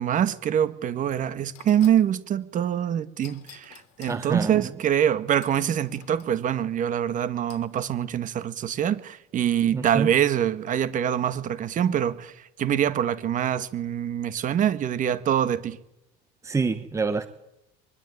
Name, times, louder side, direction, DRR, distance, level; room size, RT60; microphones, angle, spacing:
voice 1, 0.0-15.8, right 9 dB, 40° right, 1.8 m, -25 dB
sound 1, 1.5-2.1 3.2-4.2 5.4-6.3 7.5-7.9, left 17 dB, 80° left, 2.9 m, -50 dB
voice 2, 4.1-4.7 9.7-10.1 16.4-17.3, right 4 dB, 15° right, 1.4 m, -27 dB
23.0 x 20.5 x 9.4 m
cardioid pair, 125°, 20 cm